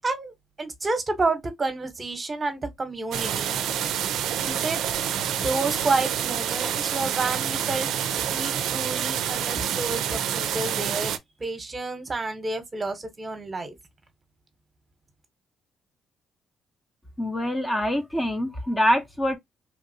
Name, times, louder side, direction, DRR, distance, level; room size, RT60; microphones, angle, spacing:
voice 1, 0.0-3.6 4.4-7.9 8.3-11.1 11.4-13.7, right 3 dB, 30° right, 0.9 m, -30 dB
sound 1, 3.1-11.2, right 9 dB, 85° right, 0.4 m, -27 dB
voice 2, 17.2-19.4, equal, 15° left, 0.6 m, -25 dB
2.9 x 2.6 x 2.6 m
cardioid pair, 90°, 0 cm